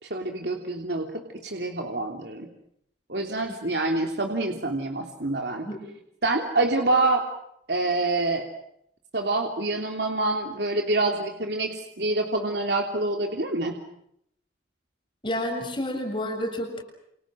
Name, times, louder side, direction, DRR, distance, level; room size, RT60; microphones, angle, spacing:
voice 1, 0.0-2.5 3.1-5.7 6.2-7.2 7.7-8.5 9.1-13.8, right 2 dB, 70° right, 3 dB, 3.2 m, -26 dB
voice 2, 15.2-16.8, left 1 dB, 30° left, 4 dB, 7.0 m, -29 dB
29.5 x 29.0 x 6.3 m, 0.75 s
head